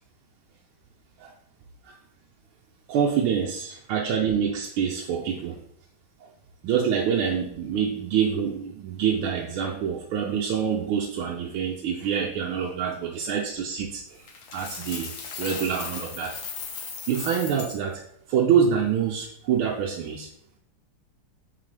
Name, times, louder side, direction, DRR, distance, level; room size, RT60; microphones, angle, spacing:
voice 1, 2.9-5.6 6.6-14.3 14.5-16.4 17.1-18.0 18.3-20.3, right 7 dB, 75° right, 0 dB, 1.5 m, -26 dB
Coin (dropping), 14.3-17.8, left 5 dB, 60° left, 0.8 m, -37 dB
7.6 x 4.2 x 3.3 m, 0.73 s
omnidirectional pair, 2.4 m